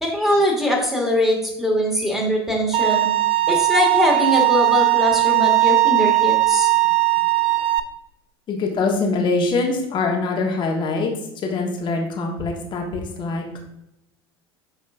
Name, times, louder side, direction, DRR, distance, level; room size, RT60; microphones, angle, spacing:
voice 1, 0.0-3.1 3.5-6.7, left 1 dB, ahead, -1 dB, 2.2 m, -21 dB
Bowed string instrument, 2.7-7.8, right 18 dB, 40° right, 0.5 m, -18 dB
voice 2, 8.5-11.1 11.4-13.6, left 3 dB, 35° left, 1 dB, 1.5 m, -23 dB
7.6 x 5.0 x 2.6 m, 0.84 s
hypercardioid pair, 80°, 13 cm